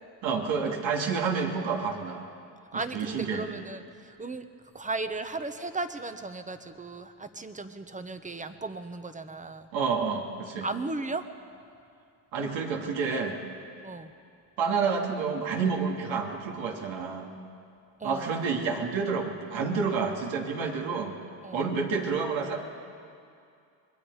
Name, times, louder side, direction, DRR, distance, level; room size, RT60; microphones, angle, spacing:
voice 1, 0.2-2.3 2.7-3.5 9.7-10.7 12.3-13.4 14.6-17.3 18.0-21.1 21.5-22.6, right 5 dB, 70° right, 0 dB, 3.1 m, -29 dB
voice 2, 2.7-4.4 4.7-9.7 10.6-11.3 13.8-14.1 18.0-18.5 21.4-21.7, right 3 dB, 15° right, 9 dB, 1.2 m, -36 dB
25.5 x 21.0 x 5.0 m, 2.4 s
cardioid pair, 95°, 47 cm